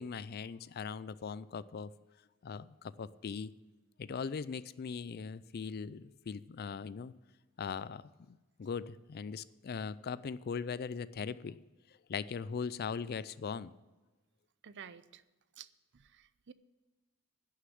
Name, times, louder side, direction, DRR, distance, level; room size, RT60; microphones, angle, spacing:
voice 1, 0.0-1.9 2.4-3.5 4.0-7.1 7.6-11.6 12.1-13.7, left 6 dB, 45° left, 17 dB, 0.4 m, -40 dB
voice 2, 14.6-15.2 15.6-15.7 15.9-16.5, right 8 dB, 55° right, 15 dB, 0.5 m, -51 dB
11.0 x 6.6 x 9.3 m, 1.2 s
head